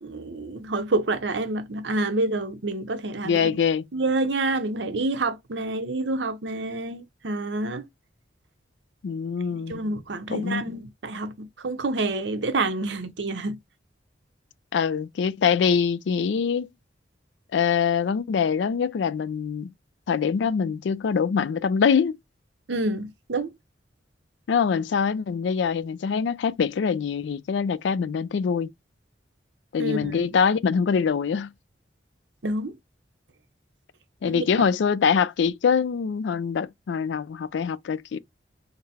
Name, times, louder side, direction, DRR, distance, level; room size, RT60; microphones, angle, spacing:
voice 1, 0.0-3.5 3.9-7.9 9.7-13.6 22.7-23.5 29.8-30.2 32.4-32.7 34.3-34.5, right 2 dB, 75° right, 0.8 m, -28 dB
voice 2, 3.2-3.8 9.0-9.7 10.3-10.6 14.7-16.7 17.5-19.7 20.1-22.2 24.5-28.7 29.7-31.5 34.2-38.2, left 6 dB, 80° left, 0.4 m, -24 dB
3.9 x 2.0 x 4.1 m
head